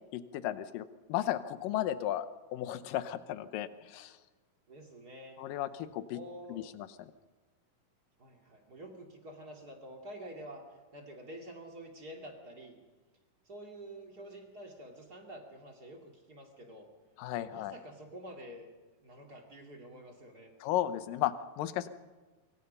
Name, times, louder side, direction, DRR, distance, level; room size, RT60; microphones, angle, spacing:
voice 1, 0.1-4.2 5.4-6.2 6.5-7.1 17.2-17.7 20.6-21.9, left 12 dB, 75° left, 12 dB, 2.5 m, -35 dB
voice 2, 4.7-5.4 6.1-6.7 8.2-10.6 10.9-12.8 13.4-16.9 17.3-18.7 19.0-20.5, right 1 dB, 30° right, 2 dB, 2.5 m, -48 dB
24.5 x 24.0 x 5.6 m, 1.3 s
omnidirectional pair, 4.1 m